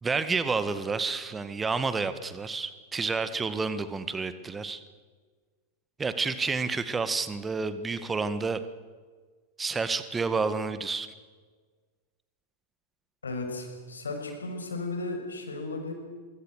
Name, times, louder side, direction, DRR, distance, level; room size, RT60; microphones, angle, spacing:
voice 1, 0.0-4.8 6.0-8.6 9.6-11.1, right 4 dB, 15° right, 12 dB, 1.8 m, -29 dB
voice 2, 13.2-15.9, left 2 dB, 75° left, 3 dB, 6.6 m, -35 dB
25.0 x 24.0 x 6.6 m, 1.5 s
figure-of-eight pair, 90°, 0 cm